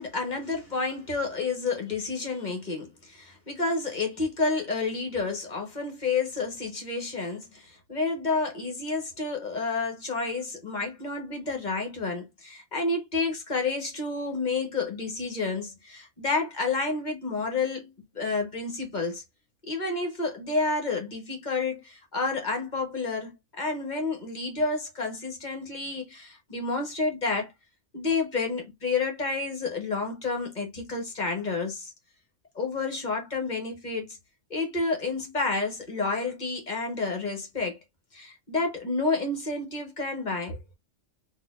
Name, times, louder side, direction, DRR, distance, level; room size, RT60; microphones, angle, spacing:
voice 1, 0.0-19.2 19.7-27.5 27.9-31.9 32.5-34.2 34.5-37.8 38.1-40.6, left 3 dB, 35° left, 1.0 m, -30 dB
4.1 x 2.7 x 2.4 m
omnidirectional pair, 1.4 m